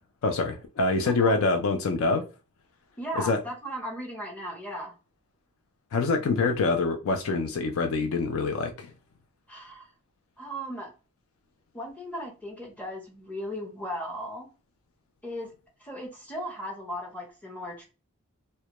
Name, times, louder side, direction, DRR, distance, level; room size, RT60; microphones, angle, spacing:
voice 1, 0.2-2.2 3.2-3.4 5.9-8.9, left 3 dB, 65° left, 0.4 m, -25 dB
voice 2, 1.0-1.4 3.0-4.9 9.5-9.9 10.4-10.9 11.7-14.5 15.2-15.5 15.8-17.8, equal, 5° left, 0.6 m, -36 dB
2.1 x 2.1 x 2.8 m
head